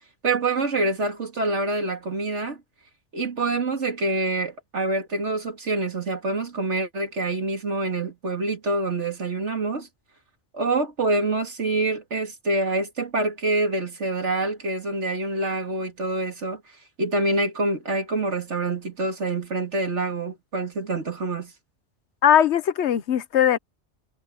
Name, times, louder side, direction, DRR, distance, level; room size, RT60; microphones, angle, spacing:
voice 1, 0.2-2.6 3.1-9.9 10.5-16.6 17.0-21.5, right 2 dB, 85° right, 2.8 m, -26 dB
voice 2, 22.2-23.6, left 10 dB, 75° left, 1.1 m, -19 dB
omnidirectional pair, 1.2 m